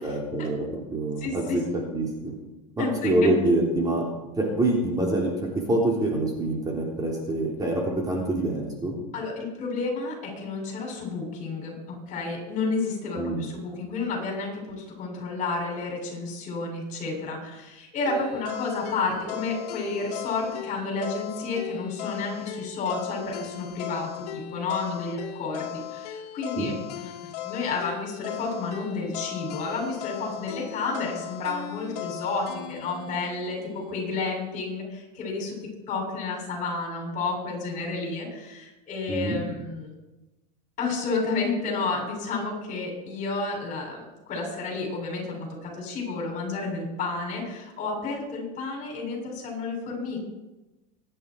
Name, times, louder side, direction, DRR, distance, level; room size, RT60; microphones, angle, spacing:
voice 1, 0.0-1.6 1.9-2.3 2.8-4.0 4.4-9.0 13.2-13.5 26.6-26.7 39.1-39.4, right 2 dB, 20° right, -1 dB, 3.5 m, -26 dB
voice 2, 1.2-1.6 2.8-3.3 9.1-11.7 12.1-35.6 35.9-39.9 40.8-50.2, left 3 dB, 40° left, 0 dB, 7.2 m, -31 dB
sound 1, 18.1-34.2, left 13 dB, 80° left, 1.7 m, -38 dB
24.5 x 10.5 x 4.7 m, 1.1 s
supercardioid pair, 130°, 20 cm